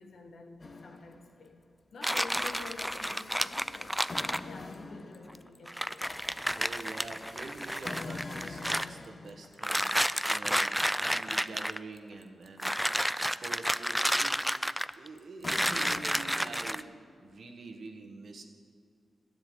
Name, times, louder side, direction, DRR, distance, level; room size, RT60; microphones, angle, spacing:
voice 1, 0.0-1.6 1.9-4.0 4.4-6.2, left 3 dB, 70° left, 3 dB, 1.6 m, -48 dB
sound 1, 0.6-1.5 2.0-17.1, left 3 dB, 40° left, 0.8 m, -46 dB
sound 2, 2.0-4.4 5.3-5.4 5.7-8.9 9.6-11.8 12.6-15.1 15.5-16.8, equal, ahead, 0.4 m, -31 dB
voice 2, 6.5-9.9 10.3-12.8 13.2-14.6 15.0-16.9 17.2-18.4, right 3 dB, 65° right, 4 dB, 1.5 m, -46 dB
12.0 x 7.3 x 9.4 m, 2.3 s
cardioid pair, 75°, 0 cm